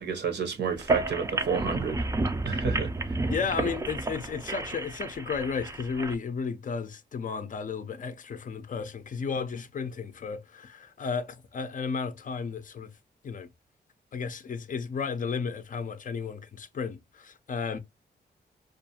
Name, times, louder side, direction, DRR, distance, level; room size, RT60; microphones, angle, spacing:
voice 1, 0.0-2.1 2.4-3.2, right 6 dB, 75° right, 0.8 m, -30 dB
sound 1, 0.7-6.1, right 2 dB, 15° right, 0.3 m, -31 dB
voice 2, 3.3-12.9 13.2-13.5 14.1-17.8, left 5 dB, 50° left, 0.5 m, -33 dB
2.4 x 2.4 x 2.7 m
cardioid pair, 80°, 18 cm